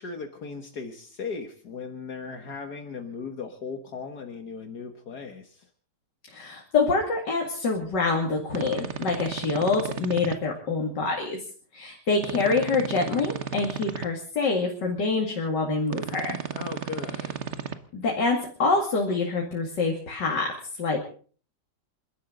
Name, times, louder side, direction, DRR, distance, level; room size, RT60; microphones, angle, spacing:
voice 1, 0.0-5.7 16.5-17.4, left 5 dB, 65° left, 4 dB, 2.0 m, -37 dB
voice 2, 6.3-11.4 11.7-16.4 17.9-21.0, left 3 dB, 80° left, 0 dB, 3.0 m, -26 dB
sound 1, 8.5-10.4 12.2-14.1 15.9-17.7, right 7 dB, 45° right, 1.2 m, -34 dB
28.5 x 12.5 x 3.9 m, 0.43 s
omnidirectional pair, 1.9 m